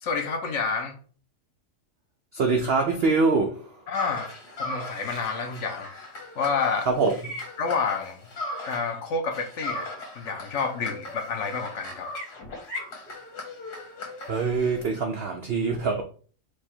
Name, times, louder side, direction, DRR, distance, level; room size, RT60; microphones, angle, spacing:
voice 1, 0.0-1.0 3.9-4.3 4.6-5.9 6.4-6.9 7.6-8.2 8.6-9.9 10.1-12.1, left 5 dB, 60° left, 0.9 m, -29 dB
voice 2, 2.3-3.8 6.9-7.1 14.3-16.0, right 4 dB, 80° right, 0.5 m, -24 dB
sound 1, 3.9-9.0 9.3-14.8, left 1 dB, 80° left, 1.8 m, -38 dB
4.8 x 2.3 x 4.3 m
omnidirectional pair, 1.7 m